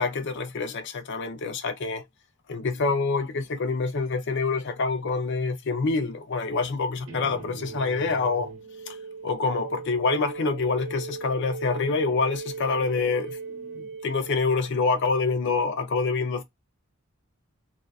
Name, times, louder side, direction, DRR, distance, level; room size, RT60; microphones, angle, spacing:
voice 1, 0.0-2.0 2.5-8.5 8.9-9.0 9.2-13.4 13.7-16.4, left 4 dB, 55° left, 0.5 m, -26 dB
sound 1, 7.1-15.0, right 4 dB, 75° right, 1.0 m, -39 dB
2.6 x 2.3 x 2.3 m
head